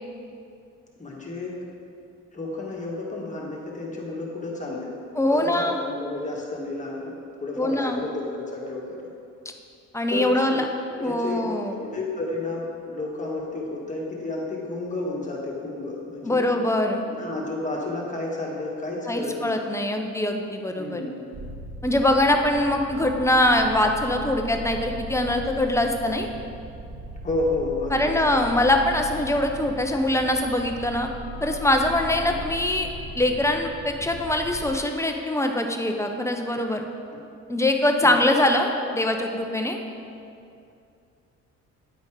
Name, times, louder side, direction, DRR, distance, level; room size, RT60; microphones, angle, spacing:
voice 1, 1.0-1.6 2.3-4.9 5.2-7.1 7.4-9.0 10.1-10.6 10.9-11.4 11.7-16.4 17.0-19.5 20.8-21.1 27.2-28.2 32.2-32.4 38.0-38.3, left 2 dB, 25° left, -3 dB, 1.6 m, -31 dB
voice 2, 5.2-5.7 7.6-8.0 9.9-10.7 11.0-11.7 16.2-17.0 19.1-21.0 21.8-26.3 27.9-31.1 31.4-32.9 33.1-36.8 37.5-39.8, left 1 dB, 10° left, 4 dB, 0.6 m, -23 dB
sound 1, 21.3-34.8, equal, 25° right, 0.7 m, -38 dB
9.7 x 4.1 x 4.8 m, 2.5 s
cardioid pair, 90°, 30 cm